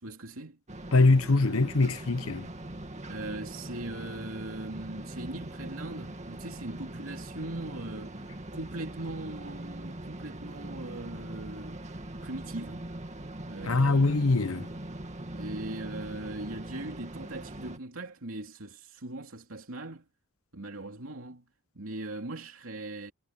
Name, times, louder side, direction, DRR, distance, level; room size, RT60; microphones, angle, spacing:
voice 1, 0.0-0.6 3.1-8.2 8.5-11.8 12.2-12.9 13.5-14.1 15.3-20.1 20.5-21.5 21.7-23.1, right 2 dB, 75° right, 2.9 m, -40 dB
sound 1, 0.7-17.8, right 1 dB, 35° right, 2.1 m, -41 dB
voice 2, 0.9-2.5 13.6-14.7, left 3 dB, 80° left, 0.9 m, -23 dB
head